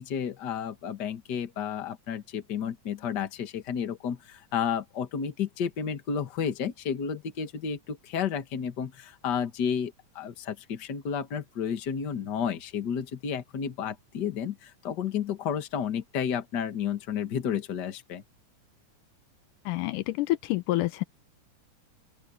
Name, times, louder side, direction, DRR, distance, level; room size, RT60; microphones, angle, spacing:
voice 1, 0.0-18.2, left 7 dB, 40° left, 1.8 m, -32 dB
voice 2, 19.7-21.0, left 17 dB, 85° left, 2.3 m, -28 dB
open air
omnidirectional pair, 3.7 m